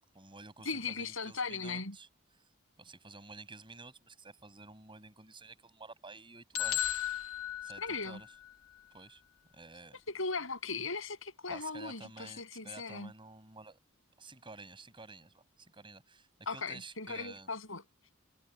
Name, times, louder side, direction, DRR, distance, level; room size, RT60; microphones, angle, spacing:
voice 1, 0.1-2.1 2.4-2.5 2.8-6.9 7.6-8.3 8.9-9.2 9.5-10.0 11.5-13.8 14.2-17.5, right 3 dB, 25° right, 6.7 m, -51 dB
voice 2, 0.6-2.0 7.8-8.2 10.1-13.1 16.5-17.8, left 4 dB, 70° left, 7.6 m, -38 dB
sound 1, 6.5-8.5, left 12 dB, 85° left, 1.3 m, -35 dB
head